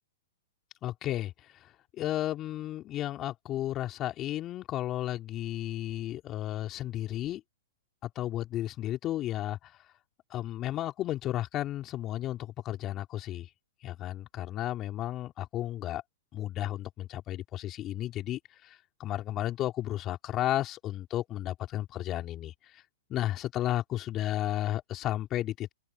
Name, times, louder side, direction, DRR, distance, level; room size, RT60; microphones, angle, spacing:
voice 1, 0.8-1.3 1.6-1.7 2.0-7.4 8.0-9.7 10.3-13.5 13.8-16.0 16.3-22.5 23.1-25.7, left 13 dB, 30° left, 3.5 m, -33 dB
hypercardioid pair, 115°, 0 cm